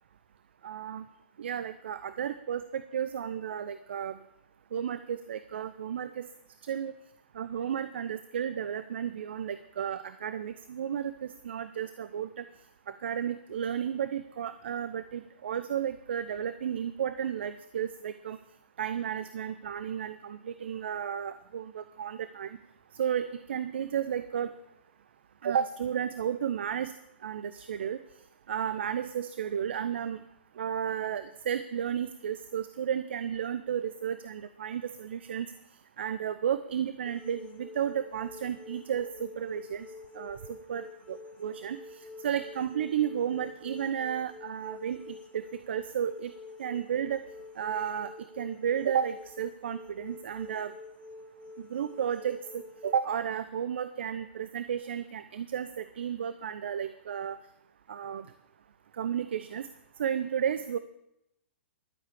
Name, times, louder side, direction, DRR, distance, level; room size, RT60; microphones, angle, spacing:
voice 1, 0.6-1.1 1.4-4.2 4.7-6.3 6.6-6.9 7.3-12.4 12.9-18.4 18.8-22.6 22.9-24.5 25.4-26.9 27.2-28.0 28.5-30.2 30.6-35.5 36.0-39.9 40.1-46.3 46.6-47.2 47.6-50.7 51.6-57.4 57.9-58.3 59.0-59.7 60.0-60.8, right 8 dB, 65° right, 12 dB, 0.7 m, -33 dB
sound 1, 37.1-53.0, left 3 dB, 20° left, 1.3 m, -48 dB
12.5 x 7.5 x 8.2 m, 0.81 s
figure-of-eight pair, 115°, 6 cm